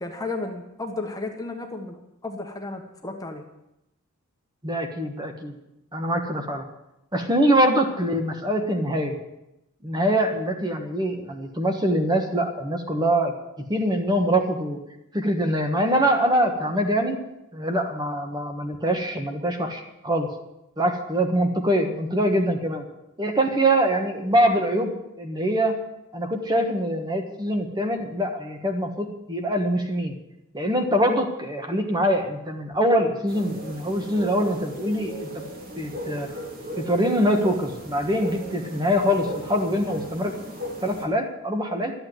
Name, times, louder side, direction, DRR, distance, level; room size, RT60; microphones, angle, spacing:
voice 1, 0.0-3.4, left 2 dB, 15° left, 3 dB, 1.3 m, -33 dB
voice 2, 4.6-5.6 5.9-6.6 7.1-9.2 9.8-13.3 13.7-14.8 15.1-17.2 17.5-20.3 20.8-22.8 23.2-25.8 26.1-30.2 30.5-35.4 35.8-36.3 36.8-40.3 40.8-41.9, equal, 20° right, 4 dB, 1.4 m, -24 dB
sound 1, 33.3-41.1, right 1 dB, 45° right, 2.6 m, -37 dB
12.5 x 8.8 x 9.3 m, 0.88 s
head